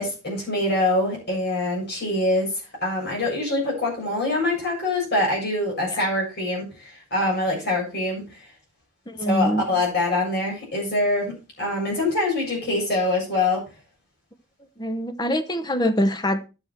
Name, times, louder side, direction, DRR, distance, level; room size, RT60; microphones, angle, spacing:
voice 1, 0.0-2.5 2.8-8.4 9.2-11.3 11.6-13.6, left 2 dB, 50° left, 7.3 m, -24 dB
voice 2, 9.1-9.6 14.8-16.4, equal, 20° left, 0.9 m, -23 dB
11.5 x 7.9 x 4.5 m
head